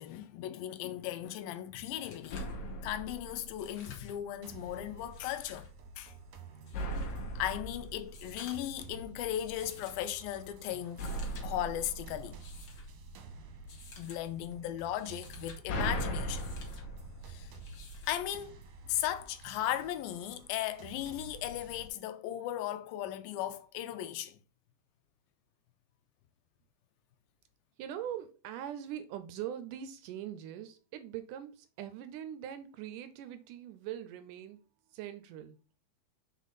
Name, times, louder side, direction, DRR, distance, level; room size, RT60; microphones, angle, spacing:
voice 1, 0.0-2.5 2.8-5.7 6.0-6.1 7.4-11.1 11.4-12.4 14.0-16.4 17.3-17.5 18.1-18.6 18.9-24.4, left 12 dB, 85° left, 2.4 m, -37 dB
sound 1, 1.5-1.6 1.9-2.6 3.5-4.2 5.0-5.7 6.7-7.2 8.0-8.8 9.6-10.1 10.8-11.5 12.3-12.9 13.7-14.2 14.8-15.6 16.3-16.8 17.6-18.2 19.6-19.7, left 4 dB, 50° left, 1.7 m, -54 dB
sound 2, 2.3-4.2 6.7-9.1 11.0-13.2 15.2-18.3, right 1 dB, 65° left, 2.1 m, -39 dB
sound 3, 4.4-21.9, right 3 dB, 65° right, 1.7 m, -52 dB
voice 2, 27.8-35.6, right 10 dB, 85° right, 1.9 m, -42 dB
6.3 x 4.1 x 4.0 m
omnidirectional pair, 4.1 m